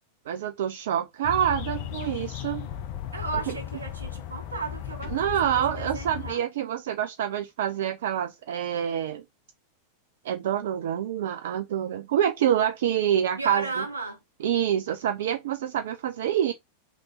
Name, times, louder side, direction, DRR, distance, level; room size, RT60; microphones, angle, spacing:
voice 1, 0.3-2.7 3.5-3.6 5.1-9.2 10.2-13.8 14.4-16.5, right 10 dB, 55° right, 0.4 m, -27 dB
sound 1, 1.2-6.3, left 10 dB, 50° left, 0.5 m, -36 dB
voice 2, 3.1-5.1 5.4-6.4 13.4-14.2, right 3 dB, 80° right, 0.9 m, -34 dB
3.2 x 3.0 x 3.7 m
figure-of-eight pair, 90°, 0 cm